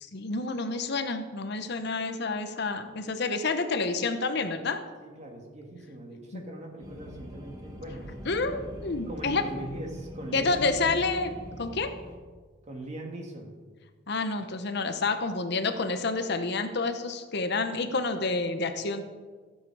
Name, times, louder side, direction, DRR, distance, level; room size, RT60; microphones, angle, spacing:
voice 1, 0.0-4.8 6.3-6.4 8.3-9.4 10.3-11.3 11.6-11.9 14.1-19.0, left 3 dB, 60° left, 8 dB, 0.9 m, -29 dB
voice 2, 5.0-8.7 9.1-11.0 12.6-13.5, right 1 dB, 35° right, 1 dB, 2.1 m, -41 dB
sound 1, 6.8-12.2, equal, 20° right, 1.5 m, -43 dB
14.5 x 7.7 x 4.7 m, 1.4 s
head